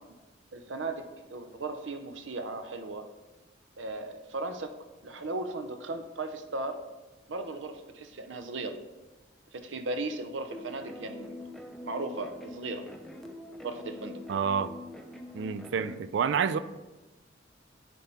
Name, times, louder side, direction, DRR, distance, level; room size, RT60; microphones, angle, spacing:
voice 1, 0.5-3.0 3.8-4.8 5.0-6.8 7.3-8.8 9.5-11.4 11.8-12.8 13.6-14.2 15.9-16.0, right 2 dB, 90° right, 0.7 m, -36 dB
sound 1, 10.5-16.0, left 1 dB, ahead, 0.5 m, -44 dB
voice 2, 14.3-14.8 15.3-16.6, right 6 dB, 70° right, 0.3 m, -28 dB
9.3 x 4.2 x 3.5 m
head